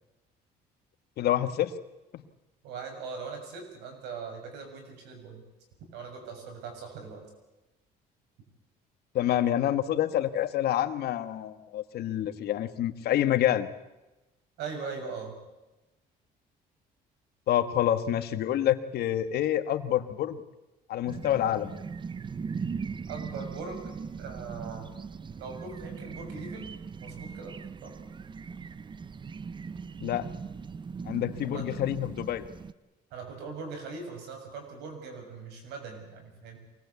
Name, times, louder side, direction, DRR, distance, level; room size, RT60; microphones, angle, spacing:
voice 1, 1.2-1.7 2.1-2.2 9.1-13.7 17.5-20.4 20.9-21.7 30.0-30.3 31.0-32.4, left 11 dB, 70° left, 10 dB, 1.5 m, -27 dB
voice 2, 2.6-5.4 5.9-7.2 14.6-15.4 23.1-23.9 24.2-24.9 25.4-26.7 27.0-27.9 31.5-31.8 33.1-36.6, right 4 dB, 85° right, 4 dB, 6.6 m, -40 dB
sound 1, 21.1-32.7, right 5 dB, 30° right, 0.7 m, -39 dB
24.0 x 19.0 x 8.4 m, 1.0 s
cardioid pair, 110°, 17 cm